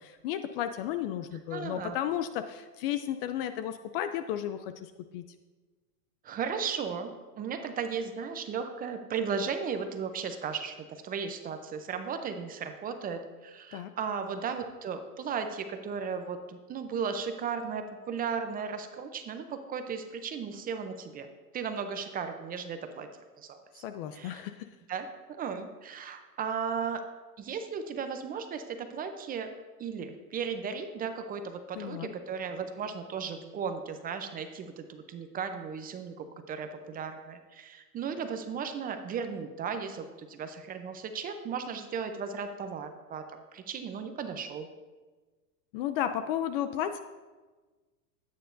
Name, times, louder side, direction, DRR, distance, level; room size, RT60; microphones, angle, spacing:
voice 1, 0.0-5.2 13.7-13.9 23.8-24.7 31.8-32.1 45.7-47.0, left 10 dB, 40° left, 10 dB, 0.4 m, -33 dB
voice 2, 1.5-2.0 6.2-21.3 21.5-23.1 23.4-23.8 24.1-24.4 24.9-27.0 27.4-29.5 29.8-43.2 43.5-44.7, right 6 dB, 20° right, 7 dB, 0.6 m, -36 dB
13.5 x 9.3 x 2.6 m, 1.3 s
hypercardioid pair, 125°, 47 cm